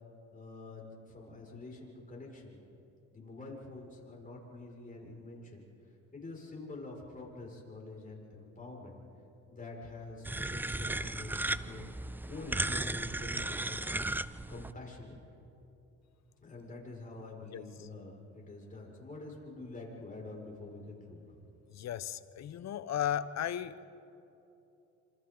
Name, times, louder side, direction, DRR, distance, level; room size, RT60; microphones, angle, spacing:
voice 1, 0.3-2.6 3.1-5.7 6.1-9.0 9.5-11.9 12.3-13.9 14.5-15.2 16.4-21.4, left 2 dB, 25° left, -2 dB, 5.7 m, -47 dB
sound 1, 10.2-14.7, right 2 dB, 5° right, 0.4 m, -35 dB
voice 2, 21.7-23.8, left 10 dB, 60° left, 15 dB, 0.8 m, -35 dB
27.5 x 27.0 x 3.9 m, 2.9 s
cardioid pair, 90°, 30 cm